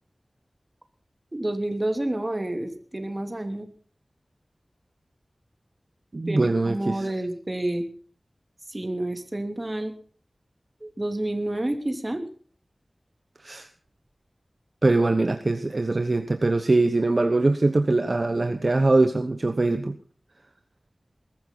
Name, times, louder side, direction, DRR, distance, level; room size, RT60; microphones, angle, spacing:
voice 1, 1.3-3.7 6.3-7.8 8.7-9.9 10.8-12.3, right 1 dB, 30° right, 7 dB, 3.0 m, -29 dB
voice 2, 6.1-7.1 13.4-13.7 14.8-20.0, right 2 dB, 50° right, 8 dB, 1.2 m, -22 dB
21.5 x 13.5 x 4.1 m, 0.43 s
wide cardioid pair, 60°, 0 cm